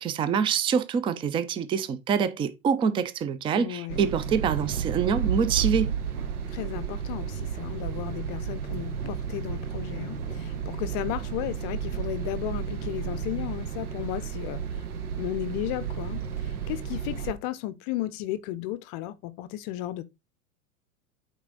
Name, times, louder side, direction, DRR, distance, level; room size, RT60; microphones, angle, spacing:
voice 1, 0.0-5.9, right 7 dB, 10° right, 0.4 m, -26 dB
voice 2, 3.5-4.1 6.5-14.6 15.2-20.0, left 14 dB, 40° left, 0.6 m, -34 dB
sound 1, 3.9-17.3, right 7 dB, 85° right, 1.0 m, -32 dB
8.5 x 3.7 x 3.8 m
hypercardioid pair, 100°, 43 cm